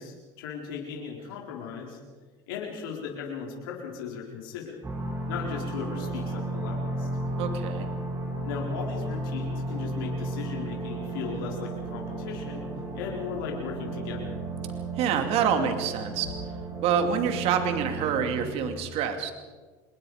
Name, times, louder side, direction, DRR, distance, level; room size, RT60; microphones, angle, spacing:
voice 1, 0.0-2.0 2.5-4.8 5.3-7.1 8.4-12.7 12.9-14.4, left 6 dB, 85° left, -1 dB, 4.7 m, -37 dB
sound 1, 4.8-18.5, right 2 dB, 25° right, 7.5 m, -34 dB
voice 2, 7.4-7.9 15.0-16.3 16.8-19.3, right 7 dB, 60° right, 6 dB, 2.7 m, -27 dB
26.0 x 21.0 x 5.1 m, 1.4 s
supercardioid pair, 90°, 11 cm